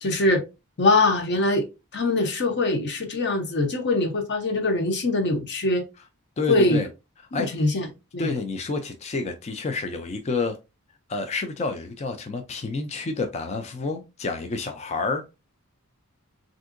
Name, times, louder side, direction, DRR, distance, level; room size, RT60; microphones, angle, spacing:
voice 1, 0.0-0.4 0.8-1.7 1.9-5.8 6.5-6.8 7.4-7.9 8.1-8.3, left 2 dB, 50° left, 0.7 m, -22 dB
voice 2, 6.4-6.9 7.3-7.7 8.2-10.6 11.1-15.3, left 3 dB, 30° left, 0.3 m, -29 dB
3.6 x 2.6 x 2.5 m
head